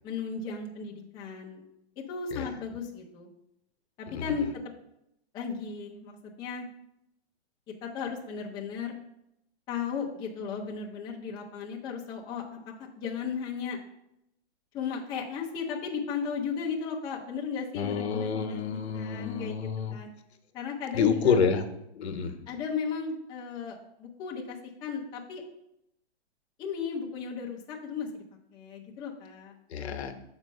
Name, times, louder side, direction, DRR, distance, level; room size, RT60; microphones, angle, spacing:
voice 1, 0.0-1.6 2.0-3.3 4.0-4.5 5.3-6.7 7.8-9.0 9.7-12.4 13.0-13.8 14.7-20.1 20.5-21.4 22.5-25.4 26.6-28.2 28.5-29.5, left 6 dB, 15° left, -2 dB, 0.5 m, -35 dB
voice 2, 4.1-4.5 17.7-20.0 20.9-21.6 21.9-22.4 29.7-30.1, left 6 dB, 75° left, 8 dB, 1.0 m, -28 dB
6.3 x 4.4 x 5.4 m, 0.81 s
hypercardioid pair, 155°, 33 cm